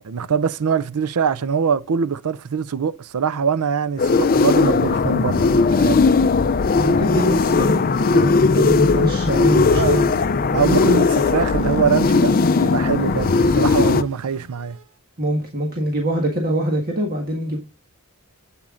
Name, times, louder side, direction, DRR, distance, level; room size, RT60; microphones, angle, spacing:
voice 1, 0.0-6.0 8.6-8.7 9.7-10.0 10.5-12.3 12.6-14.8, right 6 dB, 80° right, 0.5 m, -23 dB
sound 1, 4.0-14.0, left 4 dB, 40° left, 0.5 m, -18 dB
voice 2, 6.8-7.8 8.1-10.0 15.2-17.6, equal, 40° right, 1.6 m, -23 dB
sound 2, 8.3-14.8, equal, 60° right, 1.4 m, -39 dB
8.2 x 7.4 x 3.8 m
head